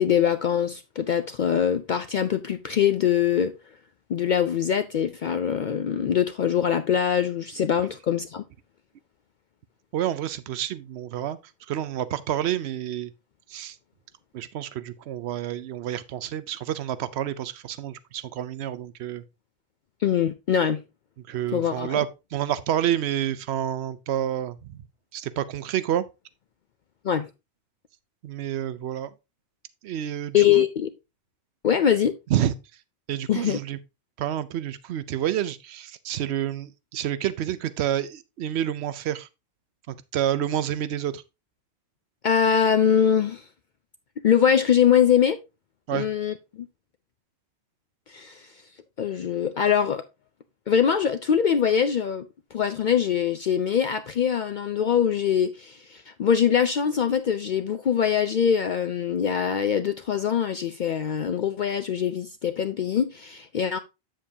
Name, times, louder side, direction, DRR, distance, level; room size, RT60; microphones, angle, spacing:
voice 1, 0.0-3.5 4.1-8.4 20.0-20.8 21.5-22.0 27.0-27.3 30.3-30.9 31.6-32.1 33.3-33.6 42.2-43.4 44.2-45.4 45.9-46.7 48.1-48.5 49.0-50.0 50.7-52.3 52.5-63.8, left 8 dB, 55° left, 0.6 m, -23 dB
voice 2, 9.9-11.4 11.7-13.1 13.5-13.8 14.3-19.2 21.3-24.8 25.1-26.0 28.2-29.1 29.8-30.6 32.3-32.5 33.1-33.8 34.2-39.3 39.9-41.2 45.9-46.1, right 11 dB, 90° right, 0.9 m, -29 dB
8.7 x 7.5 x 2.7 m
omnidirectional pair, 1.1 m